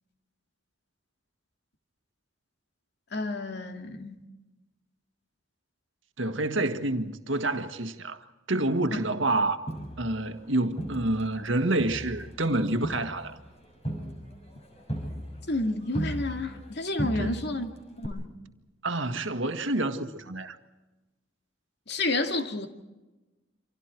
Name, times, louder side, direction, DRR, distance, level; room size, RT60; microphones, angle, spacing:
voice 1, 3.1-4.2 8.9-9.0 15.5-17.7 18.0-18.3 21.9-22.7, left 2 dB, 60° left, 2.4 m, -30 dB
voice 2, 6.2-9.6 10.0-13.4 17.2-17.3 18.8-20.6, right 2 dB, 75° right, 1.7 m, -28 dB
Crowd, 9.7-11.5 11.8-16.7 17.0-17.6 18.0-18.1, equal, 35° left, 6.8 m, -36 dB
29.5 x 26.5 x 4.6 m
head